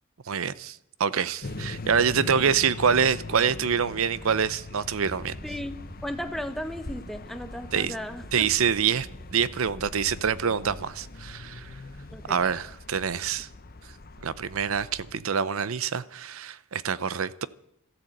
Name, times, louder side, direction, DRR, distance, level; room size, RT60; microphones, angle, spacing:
voice 1, 0.3-5.4 7.7-7.9 8.3-11.7 12.3-13.5 14.2-17.5, right 7 dB, 70° right, 0.6 m, -26 dB
sound 1, 1.4-15.1, left 2 dB, 45° left, 0.9 m, -41 dB
sound 2, 5.2-10.3, equal, 50° right, 2.2 m, -47 dB
voice 2, 5.4-5.8 6.0-8.5 12.1-12.4 15.1-15.2, equal, ahead, 0.9 m, -35 dB
13.5 x 12.5 x 7.8 m
head